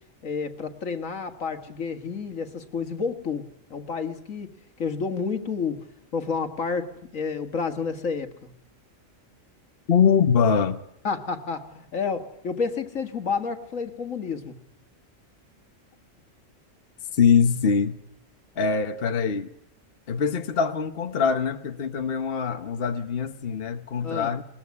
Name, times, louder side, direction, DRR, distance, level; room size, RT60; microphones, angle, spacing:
voice 1, 0.2-4.5 4.8-5.8 6.1-8.5 11.0-14.6 24.0-24.3, left 5 dB, 75° left, 2.2 m, -30 dB
voice 2, 9.9-10.8 17.1-18.0 18.6-19.5 20.1-24.4, left 6 dB, 50° left, 1.2 m, -23 dB
21.5 x 19.5 x 9.5 m
omnidirectional pair, 1.4 m